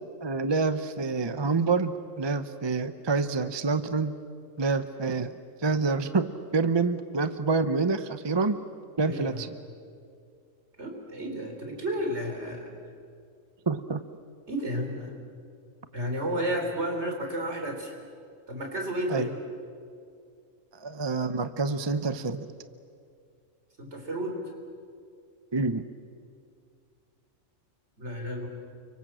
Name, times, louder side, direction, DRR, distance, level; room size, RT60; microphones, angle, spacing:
voice 1, 0.2-4.1 4.6-5.3 5.6-8.6 9.0-9.5 13.7-14.0 19.1-19.3 20.7-22.5 25.5-25.8, right 4 dB, 25° right, 11 dB, 0.6 m, -27 dB
voice 2, 9.0-9.4 10.8-12.7 14.5-15.1 15.9-17.9 18.5-19.3 23.8-24.4 28.0-28.5, equal, 55° right, 2 dB, 4.5 m, -32 dB
30.0 x 24.0 x 7.6 m, 2.3 s
omnidirectional pair, 1.4 m